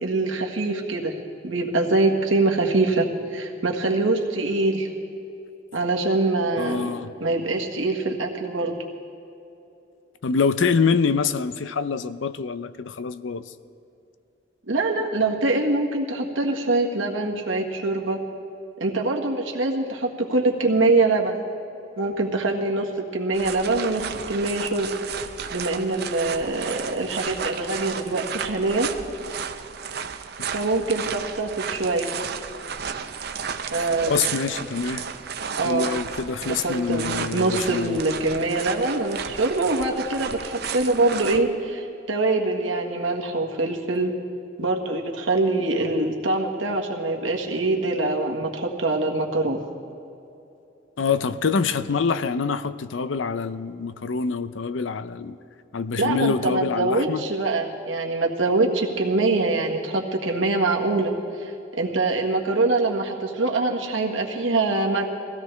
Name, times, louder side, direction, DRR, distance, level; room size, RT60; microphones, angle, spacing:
voice 1, 0.0-1.1 1.4-3.1 3.3-4.9 5.7-6.9 7.2-8.7 14.7-18.2 18.8-21.3 22.0-24.9 25.5-28.9 30.5-32.1 33.7-34.1 35.6-35.9 36.5-44.1 44.6-49.6 56.0-61.1 61.4-61.5 61.8-65.1, right 2 dB, 85° right, 1 dB, 1.6 m, -24 dB
voice 2, 6.6-7.1 10.2-13.5 34.1-35.1 35.6-38.0 51.0-55.4 55.7-57.2, left 5 dB, 80° left, 13 dB, 0.6 m, -25 dB
sound 1, 23.3-41.4, right 7 dB, 55° right, 0.7 m, -33 dB
22.5 x 16.0 x 3.4 m, 2.8 s
head